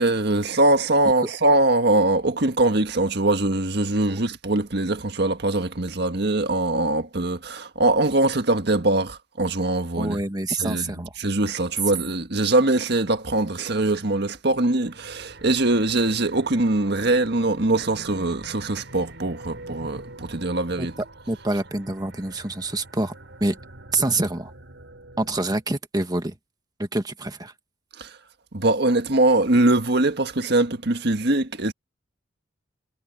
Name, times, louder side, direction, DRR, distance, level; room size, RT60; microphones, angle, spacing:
voice 1, 0.0-10.2 10.5-20.9 28.0-28.1 28.5-31.7, right 2 dB, 60° right, 1.6 m, -22 dB
voice 2, 10.0-11.1 20.8-20.9 21.3-23.1 23.4-23.6 23.9-24.5 25.2-26.4 26.8-27.5, right 2 dB, 20° right, 1.6 m, -26 dB
sound 1, 14.8-25.6, right 2 dB, 90° right, 3.4 m, -44 dB
head